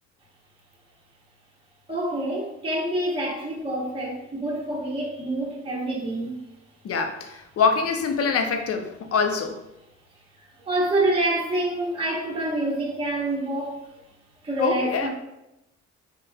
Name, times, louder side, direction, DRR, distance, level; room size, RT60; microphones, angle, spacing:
voice 1, 1.9-6.4 10.7-13.8 14.4-15.1, right 1 dB, 20° right, -3 dB, 0.8 m, -27 dB
voice 2, 6.8-9.6 14.6-15.1, left 5 dB, 50° left, 5 dB, 0.5 m, -24 dB
3.6 x 2.9 x 2.2 m, 0.89 s
cardioid pair, 90°, 30 cm